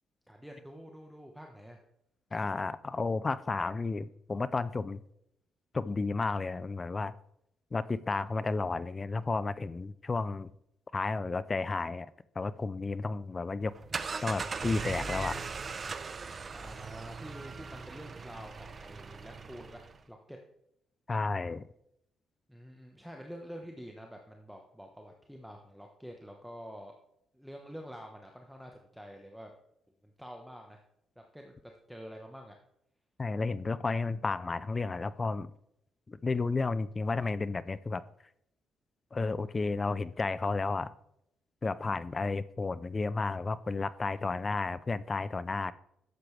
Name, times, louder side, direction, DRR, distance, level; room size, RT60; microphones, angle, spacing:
voice 1, 0.3-1.8 16.5-20.4 22.5-26.9 27.3-29.5 30.0-30.8 31.2-32.6 41.8-42.2, equal, ahead, 1.2 m, -48 dB
voice 2, 2.3-5.0 5.7-7.1 7.7-10.5 10.9-12.1 12.4-13.7 14.2-15.4 21.1-21.7 33.2-35.5 36.1-38.0 39.1-40.9 41.6-45.7, left 3 dB, 30° left, 0.5 m, -32 dB
sound 1, 13.6-20.0, right 4 dB, 40° right, 0.7 m, -39 dB
12.0 x 7.7 x 3.3 m
cardioid pair, 90°, 0 cm